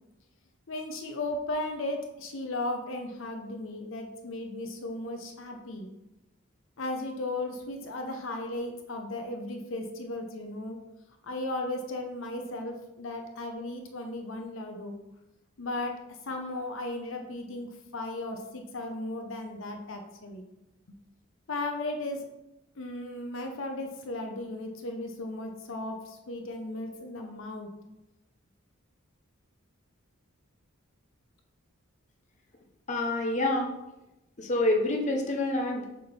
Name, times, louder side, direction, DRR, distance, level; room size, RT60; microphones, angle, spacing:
voice 1, 0.7-5.9 6.8-10.8 11.2-15.0 15.6-16.0 16.3-20.4 21.5-22.3 22.8-27.7, left 2 dB, 65° left, 4 dB, 0.8 m, -36 dB
voice 2, 32.9-33.8 34.4-35.9, left 2 dB, 35° left, 1 dB, 0.7 m, -27 dB
6.6 x 3.7 x 4.3 m, 0.94 s
head